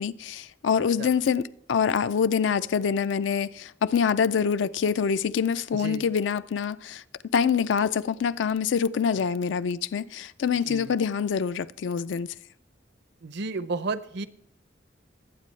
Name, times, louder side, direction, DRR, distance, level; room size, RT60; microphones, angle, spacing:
voice 1, 0.0-7.0 7.3-12.3, left 6 dB, 75° left, 0.4 m, -25 dB
voice 2, 5.7-6.0 9.1-9.2 10.7-11.0 13.2-14.3, right 3 dB, 65° right, 0.6 m, -33 dB
20.5 x 8.3 x 3.2 m
head